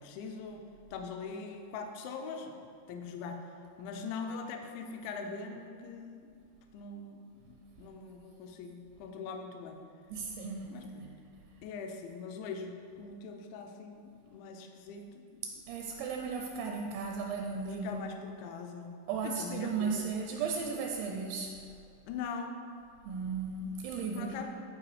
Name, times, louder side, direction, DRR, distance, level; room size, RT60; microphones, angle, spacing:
voice 1, 0.0-3.5 3.8-6.3 6.7-9.8 10.7-11.2 11.6-15.4 17.8-18.9 19.2-20.2 22.1-22.6 24.1-24.4, left 5 dB, 80° left, 4 dB, 2.8 m, -42 dB
voice 2, 10.1-10.9 15.7-18.0 19.1-21.6 23.1-24.4, right 5 dB, 85° right, 2 dB, 2.6 m, -35 dB
13.5 x 4.6 x 3.3 m, 2.3 s
omnidirectional pair, 5.5 m